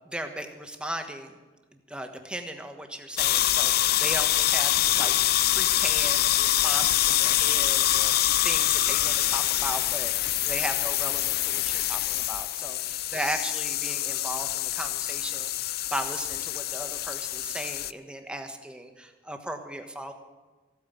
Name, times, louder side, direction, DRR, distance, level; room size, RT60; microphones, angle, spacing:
voice 1, 0.1-1.3 1.9-20.1, right 1 dB, 5° right, 5 dB, 1.4 m, -37 dB
sound 1, 3.2-17.9, left 14 dB, 55° left, 0.4 m, -25 dB
15.5 x 9.1 x 8.4 m, 1.2 s
head